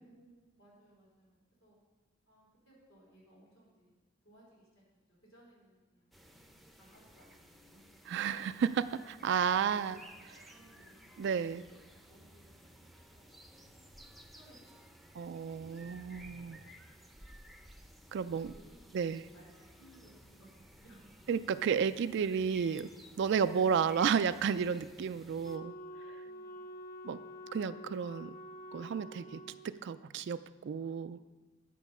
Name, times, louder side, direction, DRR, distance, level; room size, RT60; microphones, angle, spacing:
voice 1, 0.0-1.8 2.3-3.9 4.2-4.8 5.1-6.1 6.8-7.8 9.5-10.1 10.5-11.3 11.9-12.5 12.9-14.1 14.3-15.1 16.8-17.4 18.4-19.0 19.3-21.2 26.2-26.7, right 1 dB, 85° left, -5 dB, 3.9 m, -63 dB
sound 1, 6.1-25.6, equal, ahead, 0.6 m, -56 dB
voice 2, 8.1-10.0 11.2-11.6 15.2-16.6 18.1-18.5 18.9-19.2 21.3-22.9 23.2-25.7 26.1-26.2 27.0-27.2 27.5-28.3 28.7-31.3, right 7 dB, 60° right, 12 dB, 0.3 m, -32 dB
Wind instrument woodwind instrument, 25.4-29.7, left 1 dB, 45° left, 0.5 m, -48 dB
10.5 x 7.0 x 5.4 m, 1.3 s
head